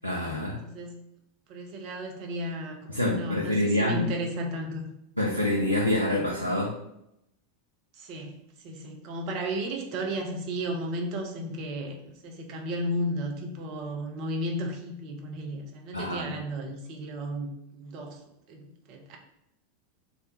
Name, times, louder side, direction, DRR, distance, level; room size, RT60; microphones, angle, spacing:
voice 1, 0.0-0.6 2.9-4.1 5.2-6.7 15.9-16.4, left 1 dB, 90° left, -3 dB, 0.4 m, -26 dB
voice 2, 0.6-1.0 1.5-4.9 7.9-8.3 8.6-18.2 18.5-19.2, equal, 45° right, 2 dB, 0.5 m, -34 dB
2.4 x 2.1 x 2.9 m, 0.80 s
figure-of-eight pair, 85°, 0 cm